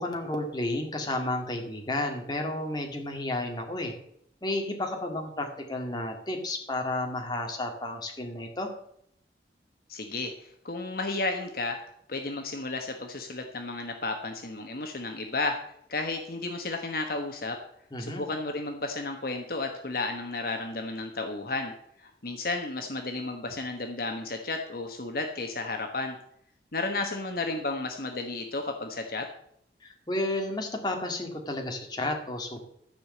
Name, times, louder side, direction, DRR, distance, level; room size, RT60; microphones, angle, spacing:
voice 1, 0.0-4.0 4.4-8.7 17.9-18.2 29.8-32.6, left 1 dB, 25° left, 2 dB, 2.0 m, -32 dB
voice 2, 9.9-17.6 18.0-21.7 22.0-26.2 26.7-29.3, left 3 dB, 55° left, 4 dB, 1.2 m, -33 dB
13.0 x 5.0 x 7.7 m, 0.71 s
head